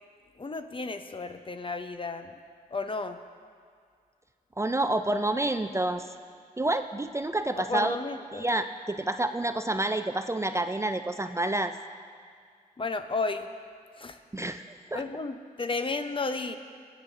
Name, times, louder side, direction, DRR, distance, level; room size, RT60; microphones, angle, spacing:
voice 1, 0.4-2.3 2.7-3.2 7.7-8.5 12.8-13.5 14.0-14.2 14.9-16.6, left 3 dB, 35° left, 8 dB, 0.6 m, -33 dB
voice 2, 4.6-6.1 6.6-8.0 8.3-11.7 14.3-15.0, right 2 dB, 20° right, 8 dB, 0.4 m, -28 dB
17.0 x 8.0 x 3.3 m, 2.1 s
cardioid pair, 60°, 15 cm